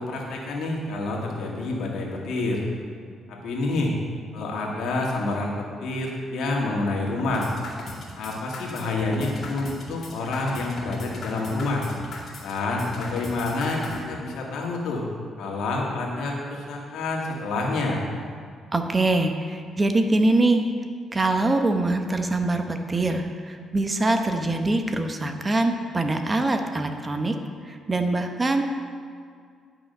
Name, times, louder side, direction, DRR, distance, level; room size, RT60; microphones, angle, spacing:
voice 1, 0.0-2.6 3.3-3.9 4.3-7.5 8.2-11.9 12.4-15.1 15.4-18.0, left 2 dB, 80° left, -2 dB, 2.0 m, -28 dB
sound 1, 7.2-14.0, left 3 dB, 55° left, 2.2 m, -38 dB
voice 2, 18.7-20.7 21.1-27.3 27.6-28.6, right 2 dB, 25° right, 6 dB, 0.9 m, -23 dB
11.0 x 6.0 x 5.4 m, 2.1 s
cardioid pair, 90°, 0 cm